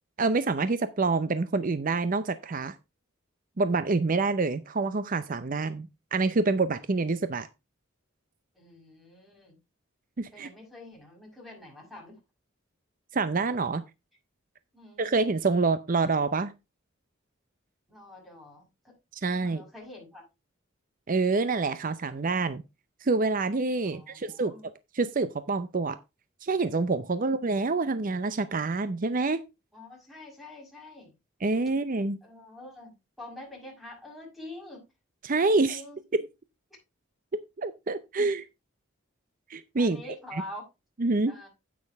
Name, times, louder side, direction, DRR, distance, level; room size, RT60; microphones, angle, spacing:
voice 1, 0.2-2.7 3.6-7.5 10.2-10.5 13.1-13.8 15.0-16.5 19.1-19.6 21.1-22.6 23.0-26.0 26.4-29.4 31.4-32.2 35.2-35.8 36.1-36.3 37.6-38.4 39.5-40.0 40.3-40.4 41.0-41.4, right 3 dB, 45° right, 0.6 m, -27 dB
voice 2, 8.5-9.6 10.3-12.2 14.7-15.1 17.9-18.7 19.3-20.2 23.8-24.6 27.2-27.3 29.7-31.1 32.2-32.9 33.2-34.8 35.6-36.0 39.8-40.6 41.3-41.5, left 1 dB, ahead, 6.0 m, -45 dB
9.7 x 8.7 x 3.4 m
head